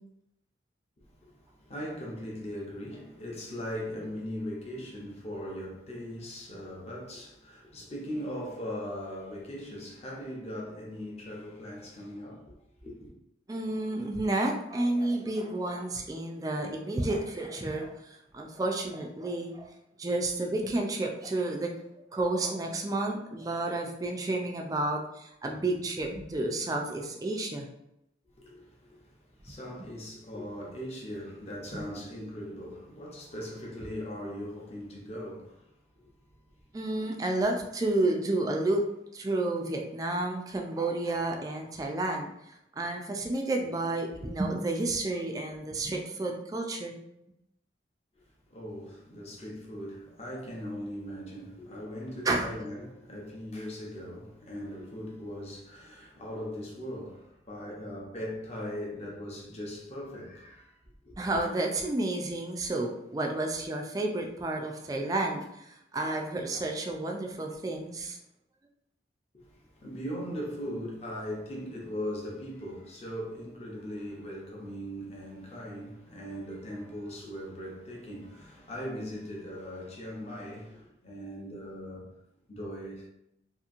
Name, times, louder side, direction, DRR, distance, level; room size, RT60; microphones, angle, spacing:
voice 1, 1.1-12.5 12.8-13.1 28.2-36.4 48.2-61.2 69.3-82.1 82.5-83.1, equal, 35° left, 0.7 m, -40 dB
voice 2, 13.5-19.7 20.0-21.7 22.1-27.7 31.7-31.8 36.7-38.8 39.1-47.0 52.2-52.5 61.2-68.2, right 2 dB, 20° right, 0.3 m, -31 dB
2.9 x 2.5 x 2.5 m
head